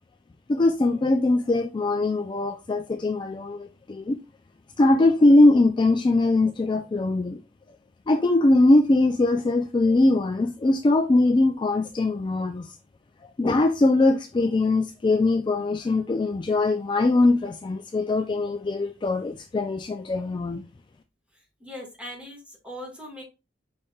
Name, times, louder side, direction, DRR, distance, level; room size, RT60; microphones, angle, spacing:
voice 1, 0.5-4.2 4.8-7.4 8.1-12.7 13.4-20.6, left 2 dB, 25° left, 0.3 m, -21 dB
voice 2, 21.3-23.2, left 1 dB, 5° right, 1.5 m, -40 dB
4.9 x 4.1 x 2.2 m
head